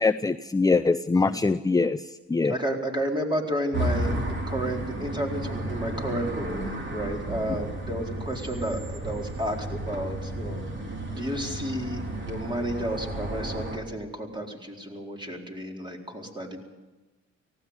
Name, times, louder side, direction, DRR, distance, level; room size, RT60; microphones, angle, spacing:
voice 1, 0.0-2.6, left 3 dB, 10° left, 12 dB, 0.6 m, -23 dB
voice 2, 1.2-1.5 2.4-10.7 11.2-16.6, equal, 15° right, 1 dB, 4.3 m, -32 dB
sound 1, 3.7-13.8, right 1 dB, 40° right, 4.0 m, -33 dB
18.5 x 17.0 x 8.2 m, 1.2 s
cardioid pair, 90°, 30 cm